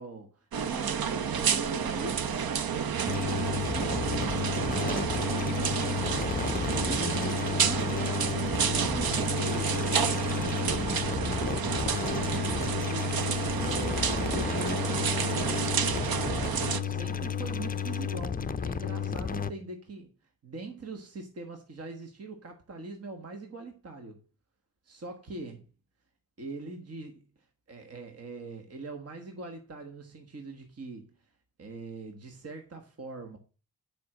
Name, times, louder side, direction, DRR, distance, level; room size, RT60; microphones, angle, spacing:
voice 1, 0.0-20.1 20.4-24.2 24.8-25.7 26.4-27.2 27.7-31.1 31.6-33.4, right 3 dB, 45° right, 1.4 m, -42 dB
sound 1, 0.5-16.8, right 7 dB, 80° right, 0.9 m, -30 dB
sound 2, 3.1-19.5, left 7 dB, 25° left, 0.5 m, -32 dB
9.6 x 5.2 x 6.1 m
wide cardioid pair, 145°, 35 cm